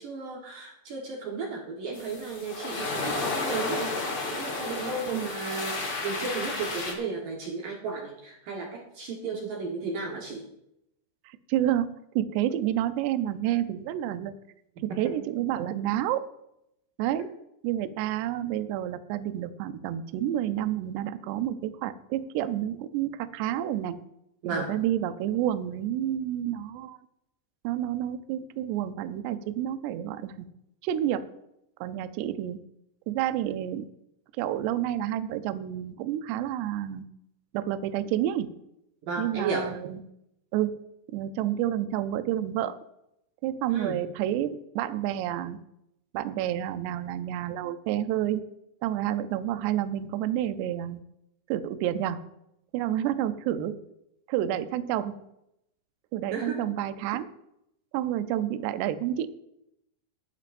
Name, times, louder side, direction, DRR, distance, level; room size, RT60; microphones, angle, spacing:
voice 1, 0.0-10.4 14.9-15.0 24.4-24.7 39.1-39.7 43.7-44.0 56.3-56.6, right 4 dB, 60° right, -1 dB, 2.5 m, -34 dB
sound 1, 1.9-6.9, left 3 dB, 35° left, 1.8 m, -32 dB
voice 2, 11.3-11.9 12.2-14.3 14.8-16.2 17.0-17.3 17.6-24.0 24.5-27.0 27.6-30.3 30.8-31.3 31.8-32.6 33.1-33.8 34.4-37.0 37.5-38.5 39.2-40.0 40.5-40.7 41.1-42.8 43.4-45.6 46.1-48.4 48.8-51.0 51.5-52.2 52.7-53.8 54.3-55.1 56.1-57.3 57.9-59.3, right 12 dB, 80° right, 11 dB, 2.7 m, -29 dB
19.5 x 11.5 x 2.6 m, 0.82 s
omnidirectional pair, 5.2 m